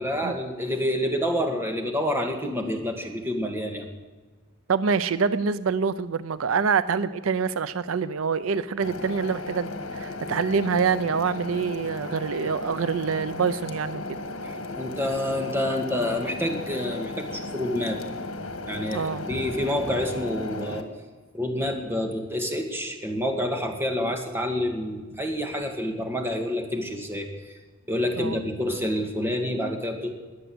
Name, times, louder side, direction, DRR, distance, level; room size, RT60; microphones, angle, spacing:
voice 1, 0.0-3.9 14.4-18.0 18.7-20.9 21.3-27.6 27.9-30.2, left 1 dB, 10° right, 3 dB, 1.8 m, -28 dB
voice 2, 4.7-14.0 18.9-19.2 28.2-28.4, right 5 dB, 80° right, 15 dB, 0.5 m, -26 dB
sound 1, 8.8-20.8, left 2 dB, 90° left, 1.7 m, -35 dB
20.5 x 7.9 x 7.8 m, 1.3 s
head